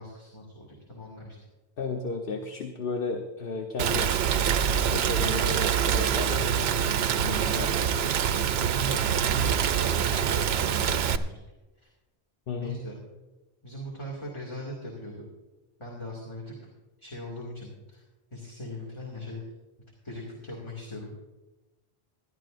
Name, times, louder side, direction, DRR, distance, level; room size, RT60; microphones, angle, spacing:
voice 1, 0.0-1.4 6.6-6.9 8.5-11.3 11.8-11.9 12.6-13.0 13.6-15.3 15.8-16.7 17.0-18.0 18.3-19.4 20.0-21.1, left 1 dB, 25° left, -4 dB, 2.3 m, -40 dB
voice 2, 1.8-4.2 4.9-6.7 7.2-8.2 12.5-12.8, left 4 dB, 65° left, 4 dB, 1.1 m, -34 dB
Rain, 3.8-11.2, right 8 dB, 80° right, 0.8 m, -25 dB
20.0 x 12.5 x 2.5 m, 1.1 s
omnidirectional pair, 1.0 m